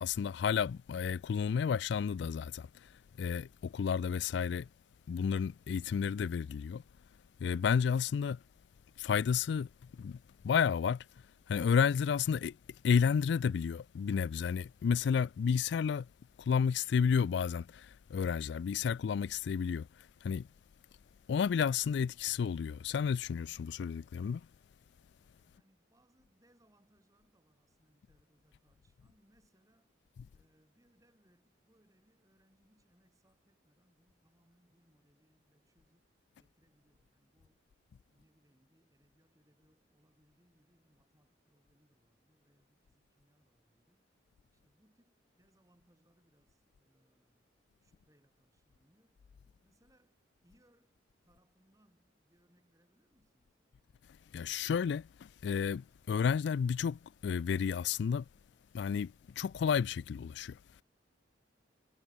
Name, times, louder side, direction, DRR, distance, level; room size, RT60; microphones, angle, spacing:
voice 1, 0.0-2.9 3.2-4.7 5.1-6.8 7.4-8.4 9.0-10.2 10.4-11.0 11.5-12.6 12.8-16.1 16.4-19.9 20.2-20.5 21.3-24.4 30.2-30.3 54.3-58.3 58.7-60.6, left 6 dB, 60° left, 0.3 m, -31 dB
voice 2, 25.4-29.9 30.3-37.8 38.1-44.1 44.5-49.2 49.6-53.6, equal, 15° right, 8.0 m, -72 dB
head